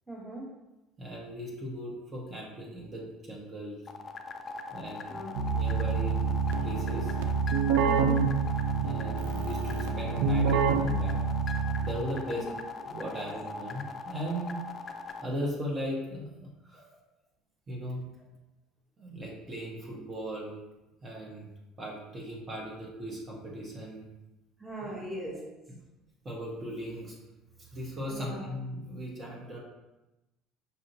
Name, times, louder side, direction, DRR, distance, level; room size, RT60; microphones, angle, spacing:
voice 1, 0.1-0.5 5.1-5.5 7.8-8.2 12.2-12.4 13.1-13.3 16.7-16.8 24.6-25.4 28.1-28.5, right 1 dB, 5° right, -4 dB, 1.1 m, -39 dB
voice 2, 1.0-3.8 4.7-5.2 5.5-6.4 6.6-7.1 8.8-11.2 11.8-12.4 12.7-14.6 15.2-16.8 17.7-18.1 19.0-20.5 21.0-21.5 21.8-24.1 24.9-25.0 26.2-27.2 27.6-29.6, equal, 30° right, -3 dB, 1.0 m, -38 dB
sound 1, 3.9-15.2, left 4 dB, 35° left, 0.4 m, -40 dB
Keyboard (musical), 5.3-12.2, right 5 dB, 85° right, 0.4 m, -27 dB
5.5 x 2.7 x 2.7 m, 1.0 s
supercardioid pair, 95°, 0 cm